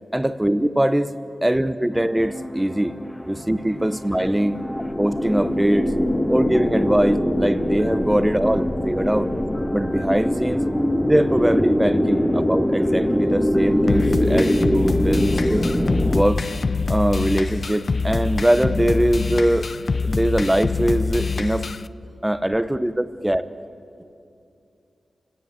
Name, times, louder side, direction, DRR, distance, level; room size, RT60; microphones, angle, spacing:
voice 1, 0.1-1.1 1.4-2.9 3.2-4.6 5.0-5.9 6.3-9.3 9.7-10.6 11.0-15.7 16.1-16.4 16.9-19.7 20.0-21.6 22.2-23.5, right 1 dB, 10° right, 12 dB, 0.9 m, -22 dB
sound 1, 1.9-16.2, equal, 10° left, 1.4 m, -23 dB
sound 2, 13.9-21.9, left 4 dB, 50° left, 0.5 m, -25 dB
28.0 x 17.5 x 7.7 m, 2.6 s
wide cardioid pair, 90°, 0 cm